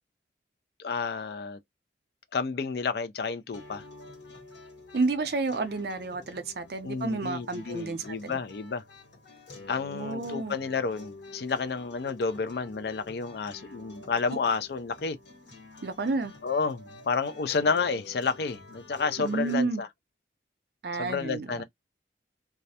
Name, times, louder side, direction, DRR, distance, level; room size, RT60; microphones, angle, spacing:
voice 1, 0.8-1.6 2.3-3.8 6.8-8.8 9.7-15.2 16.4-19.9 21.0-21.6, left 5 dB, 65° left, 0.4 m, -30 dB
sound 1, 3.5-19.5, left 2 dB, 85° left, 1.3 m, -49 dB
voice 2, 4.9-8.3 9.9-10.6 15.8-16.3 19.2-19.8 20.8-21.6, right 3 dB, 60° right, 0.5 m, -30 dB
2.3 x 2.1 x 2.7 m
head